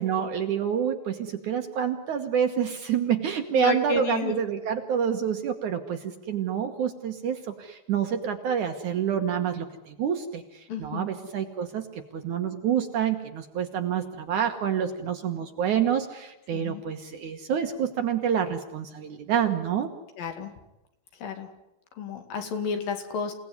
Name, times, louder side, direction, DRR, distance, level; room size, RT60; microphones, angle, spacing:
voice 1, 0.0-11.9 12.1-19.9, right 8 dB, 60° right, 6 dB, 2.3 m, -28 dB
voice 2, 3.5-4.4 10.7-11.1 16.5-16.8 20.2-20.5 21.2-21.5 21.9-23.3, left 4 dB, 65° left, 7 dB, 3.7 m, -30 dB
28.0 x 18.0 x 9.7 m, 0.95 s
omnidirectional pair, 4.6 m